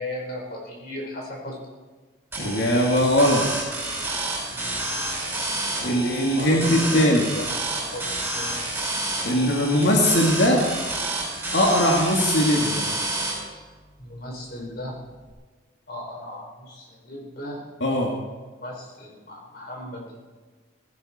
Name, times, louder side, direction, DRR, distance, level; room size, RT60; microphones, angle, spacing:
voice 1, 0.0-1.6 4.5-4.9 6.3-8.7 14.0-14.9 15.9-17.7 18.6-20.2, left 1 dB, 50° left, -1 dB, 5.0 m, -36 dB
sound 1, 2.3-13.3, right 2 dB, 10° right, 6.2 m, -29 dB
voice 2, 2.4-3.4 5.8-7.2 9.2-10.6 11.5-12.9 17.8-18.1, equal, 65° left, -1 dB, 2.2 m, -20 dB
19.0 x 16.0 x 4.3 m, 1.4 s
head